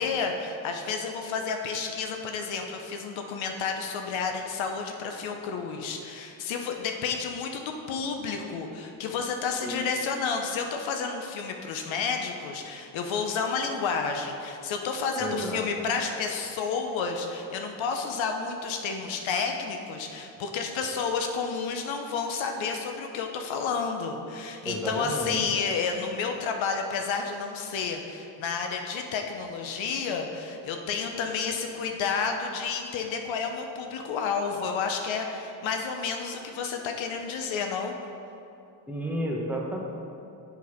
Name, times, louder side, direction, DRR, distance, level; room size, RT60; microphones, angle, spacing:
voice 1, 0.0-37.9, left 5 dB, 75° left, 4 dB, 0.9 m, -31 dB
voice 2, 15.2-15.9 24.6-25.4 38.9-39.8, equal, 5° right, -2 dB, 1.4 m, -31 dB
6.8 x 6.3 x 4.9 m, 2.7 s
supercardioid pair, 65°, 47 cm